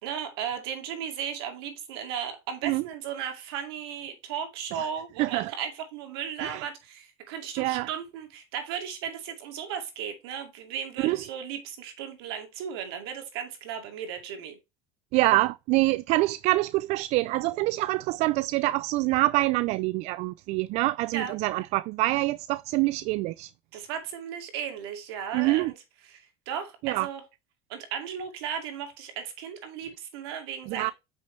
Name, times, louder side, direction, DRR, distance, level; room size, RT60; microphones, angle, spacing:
voice 1, 0.0-14.6 21.1-21.4 23.7-25.8 26.0-27.2 27.7-30.9, right 8 dB, 85° right, 2.4 m, -36 dB
voice 2, 5.2-5.5 6.4-6.6 7.6-7.9 11.0-11.2 15.1-23.5 25.3-25.7 26.8-27.1 30.7-30.9, right 19 dB, 60° right, 0.4 m, -25 dB
8.1 x 6.2 x 3.3 m
supercardioid pair, 110°, 13 cm